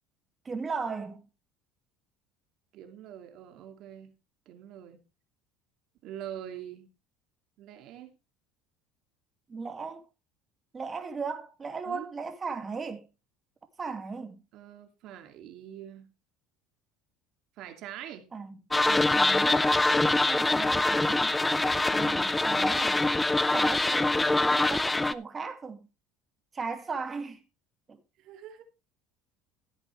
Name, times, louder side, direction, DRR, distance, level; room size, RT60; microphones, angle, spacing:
voice 1, 0.4-1.3 9.5-10.1 10.7-13.1 13.8-14.4 18.3-18.6 18.9-19.7 20.1-21.4 21.9-23.0 23.5-25.9 26.5-27.4 27.9-28.0, right 4 dB, 25° right, 2.3 m, -37 dB
voice 2, 2.7-4.1 4.5-5.0 6.0-6.9 7.6-8.2 11.9-12.1 14.5-16.1 17.6-18.3 21.7-22.1 28.2-28.6, right 10 dB, 60° right, 2.6 m, -44 dB
sound 1, 18.7-25.1, left 2 dB, 10° left, 0.6 m, -24 dB
15.5 x 8.2 x 3.3 m
cardioid pair, 125°, 0 cm